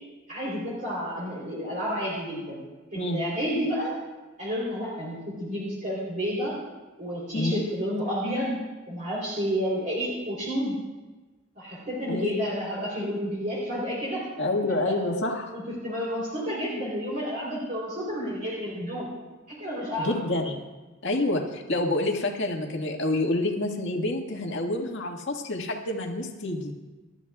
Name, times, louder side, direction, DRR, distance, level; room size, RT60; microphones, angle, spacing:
voice 1, 0.3-2.6 2.9-3.9 4.4-6.6 7.0-8.5 8.9-10.8 11.6-14.3 14.8-15.0 15.5-19.1 19.5-20.1, equal, 40° right, -6 dB, 3.6 m, -30 dB
voice 2, 12.1-12.4 14.4-15.5 20.0-20.6 21.0-26.7, left 2 dB, 55° left, 1 dB, 1.9 m, -28 dB
26.5 x 13.0 x 2.4 m, 1.2 s
head